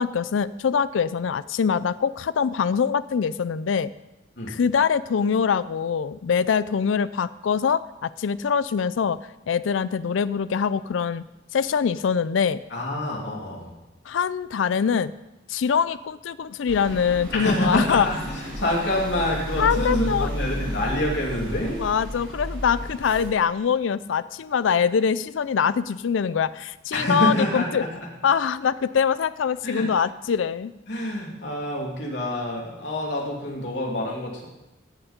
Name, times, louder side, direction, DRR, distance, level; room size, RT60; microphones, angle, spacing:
voice 1, 0.0-3.9 4.5-9.2 9.5-11.2 11.5-12.6 14.1-15.1 15.5-18.1 19.6-20.3 21.8-27.8 28.2-30.7, left 6 dB, 85° left, 15 dB, 0.4 m, -23 dB
voice 2, 12.7-13.7 17.3-21.8 26.9-27.9 29.6-29.9 30.9-34.5, left 1 dB, 65° left, -2 dB, 2.9 m, -27 dB
sound 1, 16.7-23.3, equal, 60° right, 4.3 m, -32 dB
16.0 x 7.2 x 5.1 m, 0.96 s
head